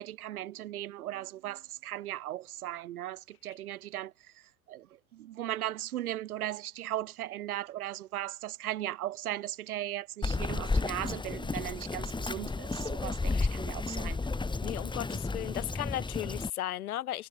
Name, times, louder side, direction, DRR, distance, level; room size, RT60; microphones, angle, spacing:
voice 1, 0.0-4.1 4.7-4.9 5.1-14.2, right 13 dB, 80° right, 3.4 m, -37 dB
Bird vocalization bird call bird song, 10.2-16.5, left 3 dB, 10° left, 7.8 m, -32 dB
voice 2, 14.6-17.3, left 13 dB, 85° left, 3.0 m, -36 dB
hypercardioid pair, 120°, 43 cm